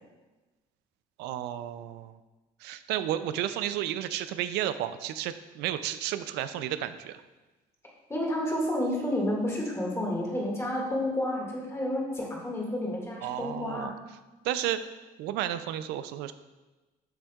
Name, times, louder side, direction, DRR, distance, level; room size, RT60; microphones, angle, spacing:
voice 1, 1.2-2.2 2.6-7.2 13.2-13.9 14.4-14.8 15.2-16.3, right 12 dB, 90° right, 12 dB, 0.4 m, -32 dB
voice 2, 8.1-13.9, left 1 dB, 15° left, -2 dB, 2.0 m, -30 dB
8.1 x 6.2 x 2.4 m, 1.2 s
cardioid pair, 110°, 17 cm